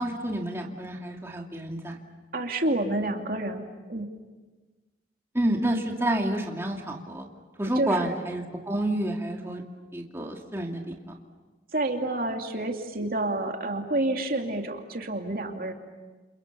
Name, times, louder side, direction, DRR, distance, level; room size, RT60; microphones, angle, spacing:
voice 1, 0.0-2.0 5.3-7.3 7.6-9.6 9.9-10.8, right 1 dB, 15° right, 0 dB, 2.6 m, -29 dB
voice 2, 2.3-3.6 3.9-4.1 7.7-8.1 11.7-15.7, right 2 dB, 55° right, 3 dB, 2.6 m, -29 dB
30.0 x 28.5 x 7.0 m, 1.3 s
head